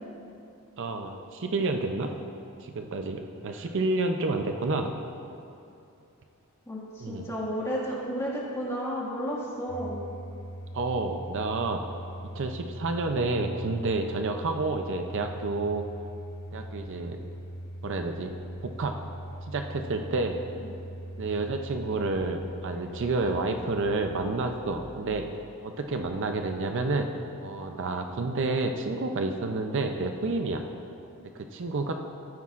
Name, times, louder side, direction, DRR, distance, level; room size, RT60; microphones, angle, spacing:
voice 1, 0.8-2.1 2.6-4.9 7.0-7.2 10.7-11.8 12.3-15.9 16.5-17.2 17.8-18.3 18.6-18.9 19.5-20.4 21.2-25.3 25.6-27.1 27.4-30.6 31.3-31.9, right 3 dB, 55° right, 5 dB, 0.5 m, -29 dB
voice 2, 6.7-10.0, equal, 15° left, -6 dB, 1.8 m, -32 dB
Domestic sounds home sounds, 9.7-26.6, equal, 50° left, 0.7 m, -41 dB
13.5 x 9.5 x 2.5 m, 2.7 s
head